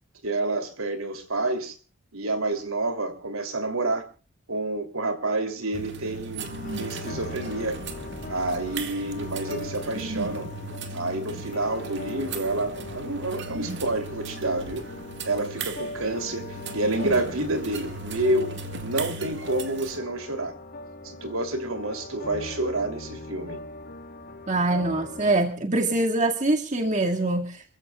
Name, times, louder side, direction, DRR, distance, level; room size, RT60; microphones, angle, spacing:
voice 1, 0.2-1.8 2.1-4.0 4.5-6.5 6.8-7.8 8.3-10.5 10.9-14.8 15.2-18.5 18.8-20.5 21.0-23.6, right 2 dB, 70° right, 3.2 m, -28 dB
sound 1, 5.7-20.0, right 3 dB, 55° right, 2.0 m, -37 dB
sound 2, 6.4-25.3, left 2 dB, 45° left, 4.1 m, -40 dB
voice 2, 24.5-27.6, right 2 dB, 35° right, 2.2 m, -24 dB
28.0 x 15.5 x 2.4 m
head